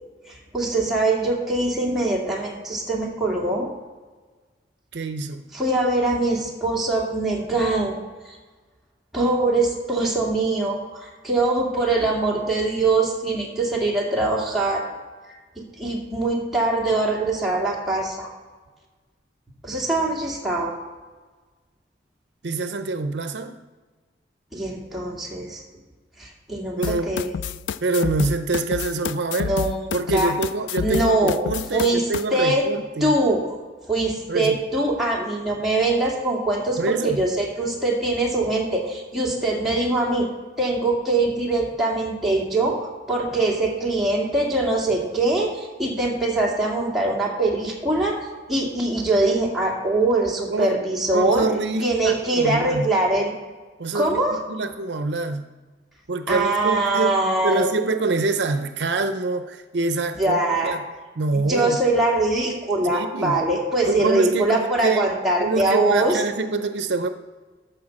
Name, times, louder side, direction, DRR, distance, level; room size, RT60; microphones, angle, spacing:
voice 1, 0.3-3.7 5.5-8.0 8.3-8.4 9.1-14.8 15.6-18.3 19.6-20.7 24.5-25.6 26.2-27.3 29.4-30.3 30.8-31.4 31.7-32.0 32.3-32.6 33.0-33.5 33.9-40.3 40.6-51.5 51.8-53.3 53.9-54.3 56.3-57.7 60.2-60.8 61.3-66.2, right 2 dB, ahead, -4 dB, 2.1 m, -23 dB
voice 2, 4.9-5.4 22.4-23.6 26.8-27.1 27.8-29.6 29.9-33.1 34.3-34.6 36.8-37.2 50.5-50.8 51.1-52.9 53.8-54.2 54.5-55.5 56.1-57.2 57.4-60.4 60.6-60.8 61.2-61.8 62.9-63.4 63.8-65.1 65.4-67.1, right 3 dB, 70° right, 9 dB, 0.6 m, -25 dB
sound 1, 26.8-32.2, left 6 dB, 85° left, 0.3 m, -29 dB
13.0 x 4.5 x 6.4 m, 1.4 s
head